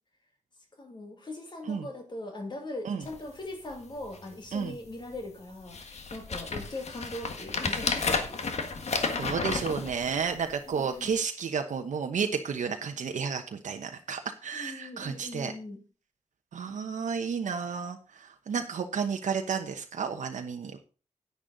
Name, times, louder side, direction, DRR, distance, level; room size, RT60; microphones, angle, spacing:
voice 1, 0.8-8.4 10.7-11.2 14.5-15.8, left 2 dB, 35° left, 4 dB, 2.2 m, -40 dB
sound 1, 3.0-3.2 3.7-3.8 4.0-4.5 5.1-5.2 5.7-10.5 11.1-11.2, left 4 dB, 60° left, 1.6 m, -32 dB
voice 2, 9.2-15.5 16.5-20.8, right 6 dB, 80° right, 5 dB, 1.0 m, -32 dB
10.0 x 9.6 x 4.0 m, 0.35 s
wide cardioid pair, 150°, 13 cm